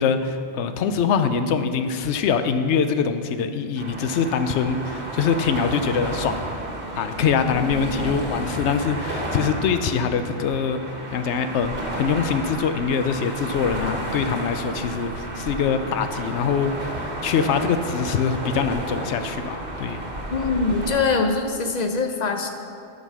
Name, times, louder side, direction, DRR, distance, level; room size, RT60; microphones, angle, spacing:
voice 1, 0.0-6.4 6.9-10.8 11.1-20.0, left 6 dB, 85° left, 9 dB, 0.9 m, -24 dB
sound 1, 3.8-21.0, right 1 dB, 50° right, 1.5 m, -32 dB
voice 2, 20.3-22.5, left 4 dB, 45° left, 5 dB, 0.7 m, -23 dB
8.8 x 6.5 x 6.1 m, 2.6 s
omnidirectional pair, 1.2 m